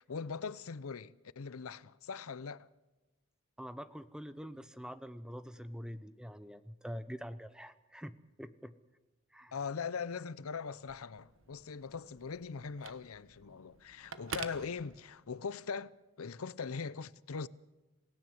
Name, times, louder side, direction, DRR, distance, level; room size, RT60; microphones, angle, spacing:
voice 1, 0.0-2.7 9.5-17.5, left 5 dB, 90° left, 0.7 m, -41 dB
voice 2, 3.6-8.8 9.3-9.5, equal, 5° right, 0.7 m, -45 dB
Telephone, 10.7-15.5, right 6 dB, 65° right, 1.2 m, -48 dB
27.5 x 17.0 x 7.8 m
head